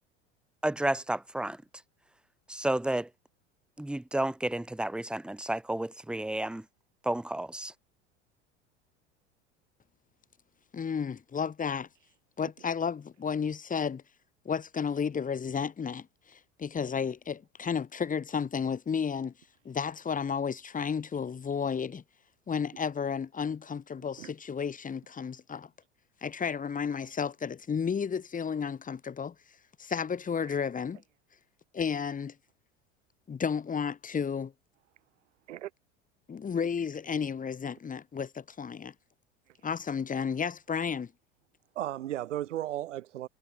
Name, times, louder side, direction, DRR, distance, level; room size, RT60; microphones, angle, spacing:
voice 1, 0.6-1.6 2.5-3.1 3.8-6.6 7.0-7.7, right 1 dB, 5° right, 0.6 m, -31 dB
voice 2, 10.7-11.9 12.4-14.0 14.4-19.3 19.6-22.0 22.5-25.7 26.2-29.3 29.8-31.0 31.7-32.3 33.3-34.5 36.3-38.9 39.6-41.1, left 6 dB, 20° left, 1.7 m, -32 dB
voice 3, 41.7-43.3, right 13 dB, 80° right, 1.2 m, -35 dB
hypercardioid pair, 80°, 36 cm